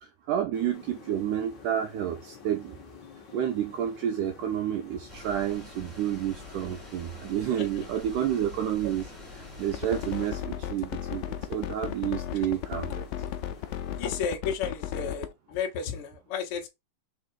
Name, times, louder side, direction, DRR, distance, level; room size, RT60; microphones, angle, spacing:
voice 1, 0.0-2.8 3.3-13.0, right 10 dB, 85° right, 1.8 m, -30 dB
sound 1, 0.5-14.1, left 6 dB, 45° left, 1.4 m, -50 dB
sound 2, 5.1-10.3, left 2 dB, 5° right, 1.7 m, -46 dB
sound 3, 9.7-15.3, left 11 dB, 85° left, 2.0 m, -34 dB
voice 2, 13.9-16.7, left 6 dB, 65° left, 1.3 m, -33 dB
6.0 x 4.0 x 4.7 m
omnidirectional pair, 4.5 m